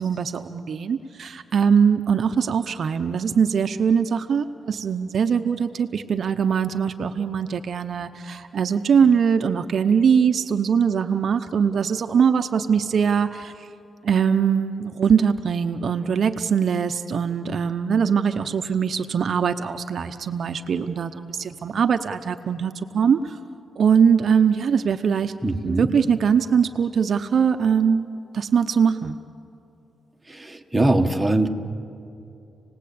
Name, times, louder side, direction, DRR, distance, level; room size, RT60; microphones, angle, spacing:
voice 1, 0.0-13.7 14.0-23.4 23.8-25.3 25.6-29.2, right 7 dB, 55° right, 8 dB, 0.7 m, -22 dB
voice 2, 25.4-25.9 30.3-31.5, right 2 dB, 10° right, 3 dB, 1.4 m, -22 dB
28.0 x 19.5 x 8.6 m, 2.7 s
wide cardioid pair, 135°, 0 cm